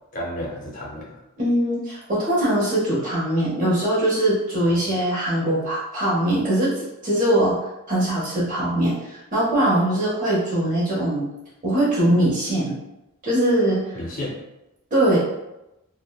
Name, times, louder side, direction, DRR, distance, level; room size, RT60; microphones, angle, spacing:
voice 1, 0.1-1.2 4.6-4.9 13.9-14.4, left 1 dB, 35° left, -2 dB, 0.5 m, -32 dB
voice 2, 1.4-7.6 7.9-11.3 11.6-12.8 13.2-13.8 14.9-15.2, right 1 dB, 35° right, -7 dB, 0.9 m, -21 dB
2.8 x 2.1 x 2.2 m, 0.93 s
head